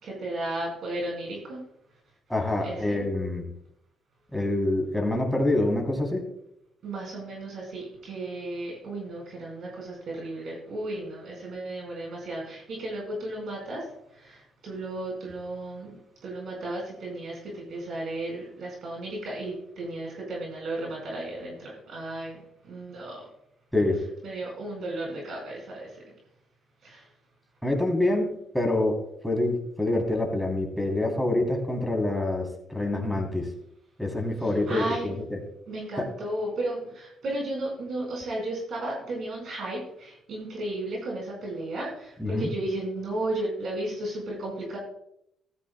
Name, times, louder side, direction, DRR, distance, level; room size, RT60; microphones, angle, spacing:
voice 1, 0.0-1.6 2.6-3.0 6.8-13.8 14.1-15.9 16.2-23.2 24.2-26.0 26.8-27.0 34.7-35.1 35.7-44.8, right 1 dB, 65° right, -1 dB, 4.5 m, -34 dB
voice 2, 2.3-3.4 4.3-6.2 23.7-24.0 27.6-29.0 29.2-33.5 34.0-35.4 36.0-36.1 42.2-42.5, left 2 dB, ahead, 1 dB, 3.0 m, -26 dB
15.0 x 13.0 x 2.2 m, 0.78 s
cardioid pair, 90°, 0 cm